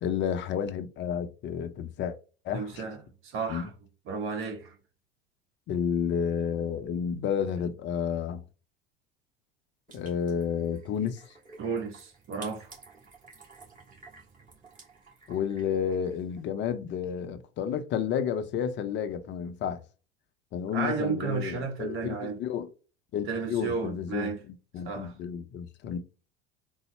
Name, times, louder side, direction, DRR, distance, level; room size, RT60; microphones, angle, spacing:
voice 1, 0.0-2.2 2.4-2.8 3.5-3.7 5.7-8.4 9.9-11.2 15.3-19.8 20.5-22.7 23.1-24.3 24.7-26.0, left 8 dB, 35° left, 0.5 m, -31 dB
voice 2, 2.5-3.0 3.2-3.7 4.0-4.8 11.6-12.7 20.7-22.4 23.3-24.4 24.8-25.1, right 5 dB, 40° right, 1.0 m, -33 dB
sound 1, 9.9-16.5, right 3 dB, 25° right, 1.6 m, -53 dB
3.9 x 2.0 x 3.0 m
figure-of-eight pair, 75°, 31 cm